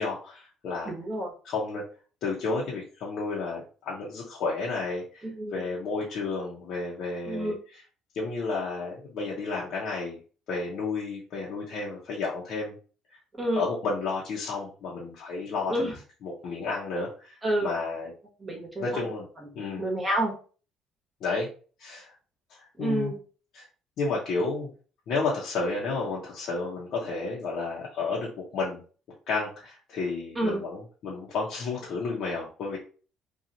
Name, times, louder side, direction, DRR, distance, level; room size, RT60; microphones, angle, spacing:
voice 1, 0.0-0.9 1.4-1.8 2.2-7.8 8.1-10.2 10.5-12.7 13.1-13.2 13.5-17.3 17.6-18.1 18.8-19.3 19.5-19.9 21.2-21.5 21.8-22.1 22.5-23.1 23.5-23.7 24.0-24.7 25.1-28.8 29.3-32.8, left 3 dB, 60° left, -5 dB, 0.8 m, -31 dB
voice 2, 0.9-1.3 5.2-5.6 7.3-7.5 13.4-13.6 15.7-15.9 17.4-17.7 18.4-18.8 19.8-20.3 22.8-23.2 30.3-30.6, right 1 dB, 20° right, -1 dB, 1.1 m, -28 dB
2.7 x 2.4 x 2.8 m, 0.38 s
cardioid pair, 120°, 0 cm